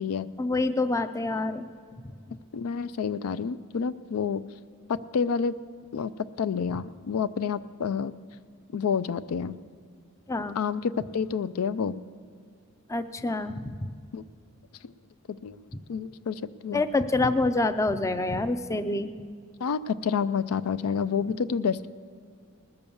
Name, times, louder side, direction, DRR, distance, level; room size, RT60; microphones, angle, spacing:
voice 1, 0.4-1.7 2.3-2.4 10.3-10.6 12.9-13.9 16.7-19.1, left 2 dB, 15° left, 10 dB, 0.4 m, -27 dB
voice 2, 2.5-4.4 4.9-5.6 5.9-6.1 6.4-8.2 8.7-9.6 10.5-12.0 14.1-14.2 14.8-14.9 15.3-15.6 15.9-16.8 19.6-21.9, left 6 dB, 85° left, 14 dB, 0.4 m, -29 dB
19.5 x 6.8 x 7.0 m, 2.1 s
head